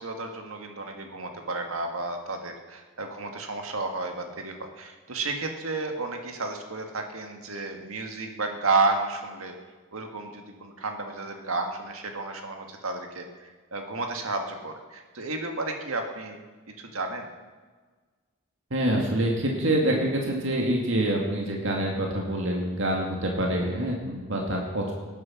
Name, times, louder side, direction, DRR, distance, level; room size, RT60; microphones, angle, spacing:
voice 1, 0.0-9.5 9.9-16.4 16.8-17.3, right 3 dB, 85° right, 4 dB, 1.7 m, -32 dB
voice 2, 18.7-24.9, right 1 dB, 60° right, -1 dB, 2.3 m, -26 dB
18.0 x 9.6 x 5.9 m, 1.4 s
head